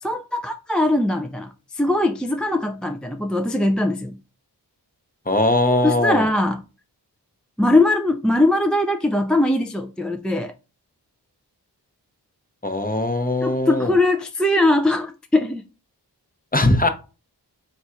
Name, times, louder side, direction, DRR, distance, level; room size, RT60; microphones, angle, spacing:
voice 1, 0.0-4.2 5.8-6.6 7.6-10.5 13.4-15.6, left 1 dB, ahead, 0.3 m, -21 dB
voice 2, 5.3-6.3 12.6-14.0 16.5-16.9, left 2 dB, 20° left, 0.7 m, -20 dB
3.9 x 2.4 x 4.3 m
wide cardioid pair, 45°, 41 cm